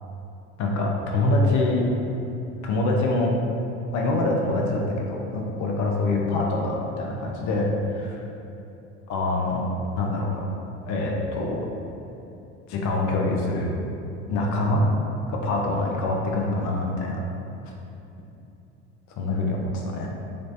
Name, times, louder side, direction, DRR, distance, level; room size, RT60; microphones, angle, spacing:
voice 1, 0.6-1.8 2.6-3.3 3.9-8.2 9.1-9.6 9.9-10.5 10.9-11.6 12.7-13.7 14.3-14.8 15.3-17.2 19.2-20.1, left 2 dB, 55° left, 0 dB, 0.8 m, -25 dB
3.3 x 3.1 x 4.0 m, 2.9 s
supercardioid pair, 90°, 35 cm